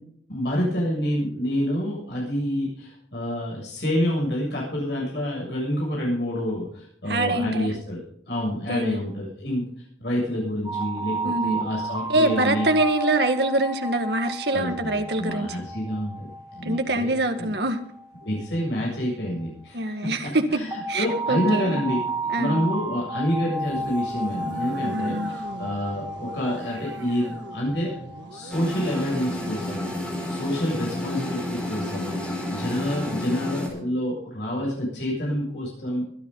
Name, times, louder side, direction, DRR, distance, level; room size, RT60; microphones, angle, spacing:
voice 1, 0.3-9.7 10.0-12.7 14.5-17.5 18.2-22.0 22.3-27.9 28.3-36.0, equal, 70° left, -4 dB, 7.3 m, -28 dB
voice 2, 7.1-7.7 8.7-9.0 11.2-11.7 12.1-15.6 16.6-17.8 19.7-20.6 20.9-21.8 22.3-22.7 24.9-25.3, right 2 dB, 65° right, 7 dB, 1.8 m, -24 dB
sound 1, 10.6-19.5 20.7-29.9, right 2 dB, 20° right, 6.8 m, -33 dB
sound 2, 23.6-30.4, right 1 dB, 85° right, 1.5 m, -41 dB
sound 3, 28.5-33.7, left 1 dB, 5° left, 4.6 m, -31 dB
24.0 x 9.9 x 3.9 m, 0.67 s
head